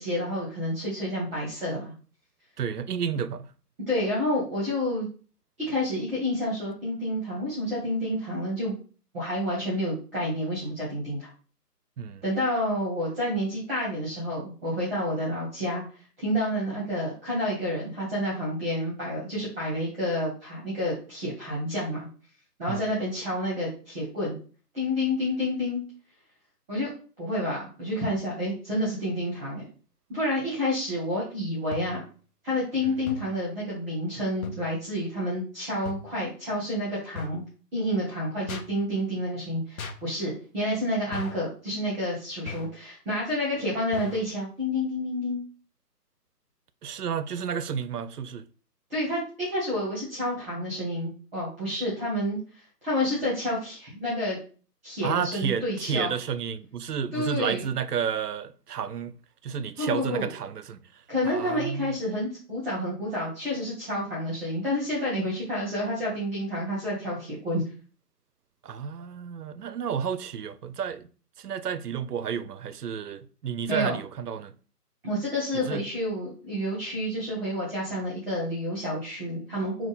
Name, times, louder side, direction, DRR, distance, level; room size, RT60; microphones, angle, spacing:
voice 1, 0.0-1.9 3.9-5.1 5.6-8.7 9.1-11.3 12.2-15.8 16.2-22.1 22.6-24.4 24.7-25.8 26.7-26.9 27.2-29.6 30.1-32.0 32.4-37.4 37.7-45.4 48.9-52.4 52.8-54.4 54.8-56.1 57.1-57.7 59.8-60.3 61.1-67.6 73.7-73.9 75.0-79.9, left 1 dB, 10° right, 0.8 m, -29 dB
voice 2, 2.6-3.5 12.0-12.2 22.7-22.9 32.9-33.0 46.8-48.5 55.0-59.1 59.4-60.8 61.2-61.9 68.6-71.1 71.4-74.5 75.6-75.8, right 7 dB, 70° right, 0.5 m, -31 dB
sound 1, 31.7-32.1 33.1-33.4 34.4-34.7 35.9-36.2 37.2-37.5 38.5-38.8 39.8-40.1 41.1-41.5 42.5-42.8 43.9-44.3, left 4 dB, 60° left, 0.7 m, -38 dB
3.7 x 2.4 x 4.0 m
figure-of-eight pair, 155°, 49 cm